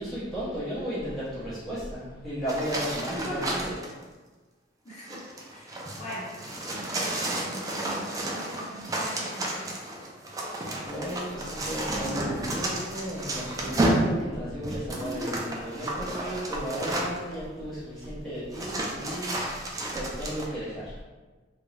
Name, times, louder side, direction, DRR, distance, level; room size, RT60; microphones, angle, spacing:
voice 1, 0.0-3.6 10.8-19.4 19.9-21.0, equal, ahead, -12 dB, 0.8 m, -34 dB
sound 1, 2.5-3.9 4.9-17.3 18.0-18.1 18.5-20.4, right 1 dB, 20° right, 0.3 m, -31 dB
voice 2, 3.1-3.7 4.8-5.2 5.5-6.3 6.7-7.2 7.4-9.8 12.0-12.1 14.9-15.4 19.9-20.0, equal, 40° left, -8 dB, 1.0 m, -40 dB
2.5 x 2.1 x 3.1 m, 1.3 s
head